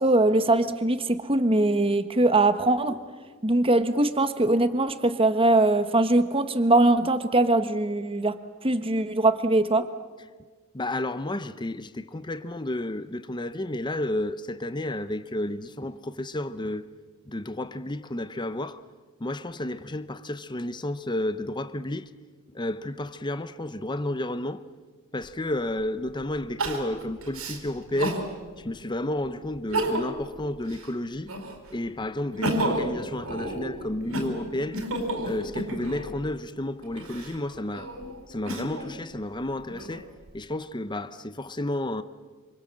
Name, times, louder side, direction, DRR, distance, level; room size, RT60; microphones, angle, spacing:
voice 1, 0.0-3.0 3.4-8.4 8.6-9.9, right 2 dB, 25° right, 1.3 m, -22 dB
voice 2, 10.7-16.8 17.2-18.8 19.2-22.1 22.5-24.6 25.1-28.2 28.6-31.3 31.7-34.8 35.2-37.9 38.3-40.1 40.3-42.0, left 1 dB, 20° left, 0.8 m, -31 dB
Crying sobbing, 25.2-25.3 26.6-28.3 28.8-28.9 29.6-30.3 30.6-31.7 32.1-36.1 36.8-38.9 39.5-40.3, right 1 dB, 70° right, 4.6 m, -31 dB
27.5 x 26.5 x 7.6 m
head